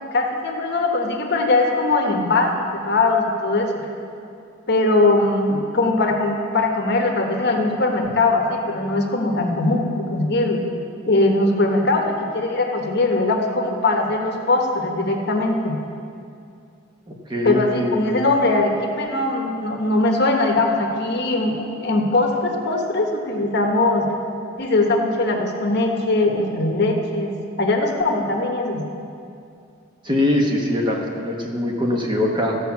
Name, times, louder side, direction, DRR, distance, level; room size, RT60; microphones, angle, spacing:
voice 1, 0.1-3.8 4.7-10.6 11.1-15.8 17.4-24.1 24.6-28.8, left 2 dB, 55° left, 2 dB, 1.1 m, -20 dB
voice 2, 17.1-18.2 30.0-32.6, left 1 dB, 25° right, 0 dB, 1.2 m, -22 dB
14.0 x 5.5 x 7.2 m, 2.5 s
head